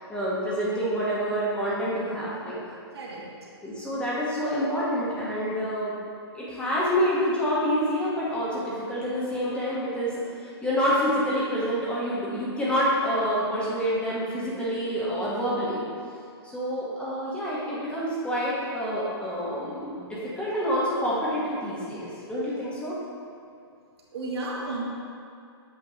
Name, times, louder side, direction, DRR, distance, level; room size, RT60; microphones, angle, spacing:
voice 1, 0.1-2.6 3.6-5.9 6.3-10.1 10.4-15.8 16.4-23.0, equal, 10° left, -8 dB, 1.1 m, -27 dB
voice 2, 2.9-3.2 24.1-24.8, right 2 dB, 65° right, -3 dB, 1.4 m, -32 dB
7.9 x 5.0 x 2.9 m, 2.4 s
hypercardioid pair, 145°, 14 cm